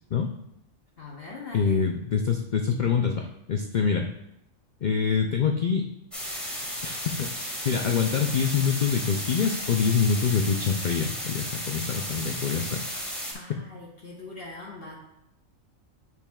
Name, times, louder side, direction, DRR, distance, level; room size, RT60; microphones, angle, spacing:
voice 1, 1.0-1.8 13.3-14.9, left 3 dB, 45° left, -3 dB, 1.2 m, -41 dB
voice 2, 1.5-4.1 4.8-5.9 6.8-13.1, left 6 dB, 75° left, 3 dB, 0.4 m, -25 dB
sound 1, 6.1-13.3, equal, ahead, 1.8 m, -34 dB
8.8 x 6.2 x 2.3 m, 0.81 s
omnidirectional pair, 1.4 m